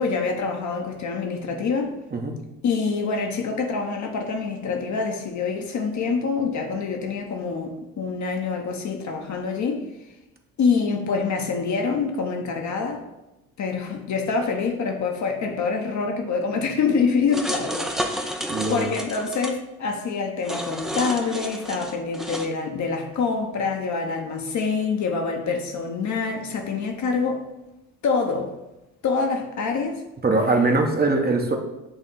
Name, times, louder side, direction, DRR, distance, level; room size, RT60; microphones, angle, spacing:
voice 1, 0.0-2.0 2.6-9.8 10.6-13.0 13.6-27.4 28.0-28.5 29.0-30.0, left 5 dB, 40° left, 3 dB, 1.0 m, -26 dB
sound 1, 17.3-19.5 20.4-22.5, equal, ahead, 0.5 m, -31 dB
voice 2, 18.5-18.9 30.2-31.5, right 3 dB, 20° right, 2 dB, 0.9 m, -21 dB
8.0 x 3.6 x 4.0 m, 0.94 s
figure-of-eight pair, 50°, 44 cm